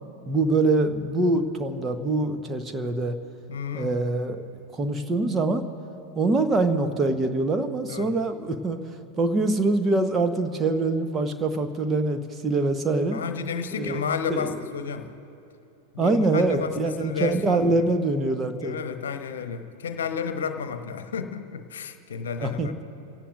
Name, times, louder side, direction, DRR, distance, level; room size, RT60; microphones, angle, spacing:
voice 1, 0.3-3.2 3.7-4.4 4.7-5.6 6.1-8.8 9.2-13.2 13.8-14.0 14.3-14.5 16.0-18.8 22.4-22.8, right 2 dB, 20° right, 6 dB, 1.1 m, -24 dB
voice 2, 3.5-3.9 7.9-8.2 13.1-15.1 15.9-17.9 18.6-22.8, left 6 dB, 65° left, 8 dB, 1.0 m, -32 dB
28.0 x 17.0 x 2.6 m, 2.8 s
figure-of-eight pair, 90°, 0 cm